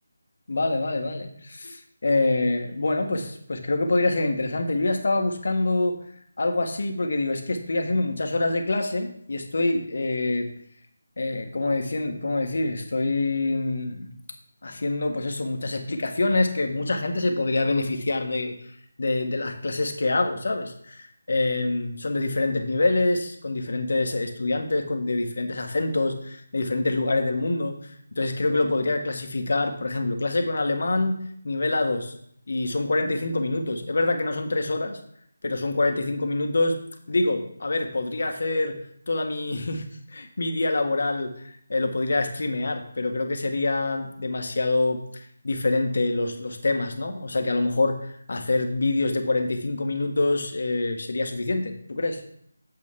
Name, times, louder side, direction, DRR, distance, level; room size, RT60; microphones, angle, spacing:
voice 1, 0.5-6.0 6.4-10.5 11.2-14.1 14.6-18.6 19.0-31.2 31.4-32.1 32.5-35.0 35.4-36.8 37.1-38.7 39.1-39.8 40.1-52.2, left 2 dB, 60° left, 4 dB, 1.6 m, -26 dB
9.0 x 7.3 x 3.7 m, 0.67 s
figure-of-eight pair, 165°, 0 cm